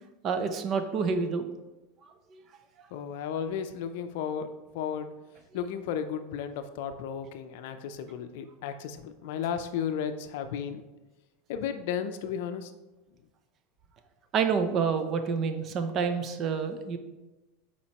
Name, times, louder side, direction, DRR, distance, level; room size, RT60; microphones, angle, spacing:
voice 1, 0.2-1.5 14.3-17.0, right 5 dB, 35° right, 8 dB, 0.6 m, -28 dB
voice 2, 2.9-4.5 4.7-5.1 5.5-10.8 11.5-12.7, left 8 dB, 65° left, 9 dB, 0.5 m, -34 dB
7.3 x 4.4 x 2.9 m, 1.1 s
supercardioid pair, 135°, 0 cm